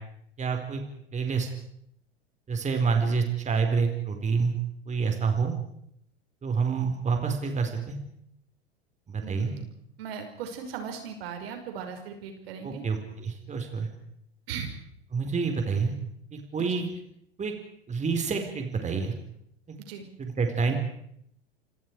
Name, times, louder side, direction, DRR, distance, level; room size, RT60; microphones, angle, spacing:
voice 1, 0.4-0.8 1.1-1.5 2.5-4.5 4.9-5.5 6.4-8.0 9.1-9.5 12.6-13.9 15.1-15.9 16.3-16.9 17.4-17.5 17.9-19.1 19.7-19.8 20.2-20.8, right 5 dB, 20° right, 4 dB, 4.6 m, -27 dB
voice 2, 9.2-9.7 10.0-12.8 14.5-14.7 19.9-20.1, right 7 dB, 65° right, 5 dB, 5.5 m, -38 dB
28.0 x 26.0 x 4.9 m, 0.72 s
hypercardioid pair, 95°, 32 cm